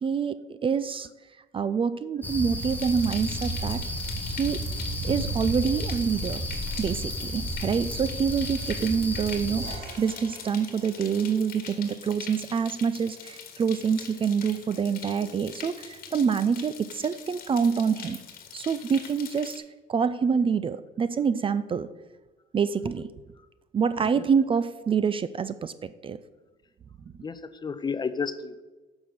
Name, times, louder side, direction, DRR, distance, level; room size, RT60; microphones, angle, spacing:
voice 1, 0.0-1.1 1.5-3.8 4.2-4.6 5.0-6.4 6.8-18.2 18.5-19.6 19.9-21.9 22.5-23.1 23.7-26.2, right 6 dB, 30° right, 14 dB, 0.5 m, -26 dB
sound 1, 2.2-9.8, equal, 10° left, 1.3 m, -32 dB
sound 2, 2.6-19.6, left 7 dB, 60° left, 1.8 m, -43 dB
sound 3, 9.6-13.5, right 4 dB, 60° right, 1.9 m, -50 dB
voice 2, 27.2-28.6, left 5 dB, 25° left, 13 dB, 0.7 m, -32 dB
8.9 x 6.2 x 6.6 m, 1.2 s
cardioid pair, 110°, 17 cm